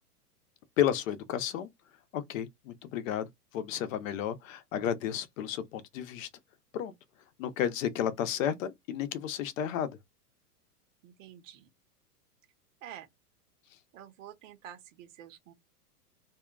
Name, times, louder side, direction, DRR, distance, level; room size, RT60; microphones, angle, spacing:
voice 1, 0.8-1.7 2.1-3.3 3.5-6.3 6.7-6.9 7.4-10.0, left 10 dB, 55° left, 0.7 m, -32 dB
voice 2, 11.0-11.7 12.8-13.1 13.9-15.5, right 10 dB, 50° right, 0.9 m, -48 dB
2.7 x 2.3 x 2.3 m
hypercardioid pair, 140°, 48 cm